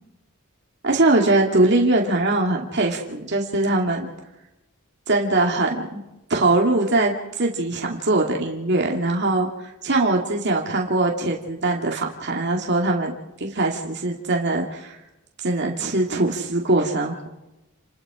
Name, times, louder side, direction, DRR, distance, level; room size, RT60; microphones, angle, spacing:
voice 1, 0.8-4.1 5.1-6.0 6.3-9.5 9.8-13.1 13.4-14.9 15.4-17.3, right 2 dB, 50° right, 0 dB, 2.4 m, -21 dB
29.0 x 20.5 x 5.0 m, 0.96 s
head